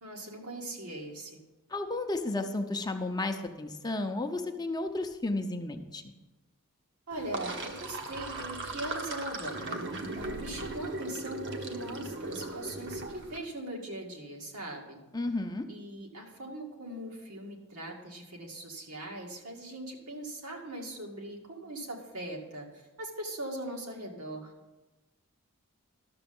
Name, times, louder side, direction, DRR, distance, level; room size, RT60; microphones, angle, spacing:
voice 1, 0.0-1.4 7.1-15.0 15.7-24.5, right 1 dB, 80° right, 0 dB, 2.1 m, -40 dB
voice 2, 1.7-6.1 15.1-15.6, left 2 dB, 20° left, 5 dB, 0.6 m, -33 dB
Sink (filling or washing), 7.1-13.4, right 2 dB, 55° right, 1.1 m, -38 dB
12.0 x 6.8 x 5.4 m, 1.1 s
head